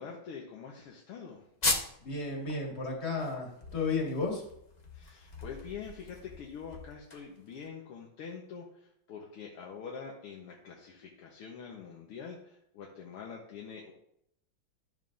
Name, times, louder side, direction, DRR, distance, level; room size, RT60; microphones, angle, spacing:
voice 1, 0.0-1.4 4.9-13.9, left 6 dB, 85° left, -1 dB, 2.0 m, -45 dB
sound 1, 1.6-2.1 2.5-2.6 3.0-7.6, left 2 dB, 70° left, 0.4 m, -37 dB
voice 2, 2.0-4.4, left 3 dB, 30° left, -1 dB, 2.0 m, -33 dB
12.0 x 7.2 x 2.6 m, 0.73 s
omnidirectional pair, 2.4 m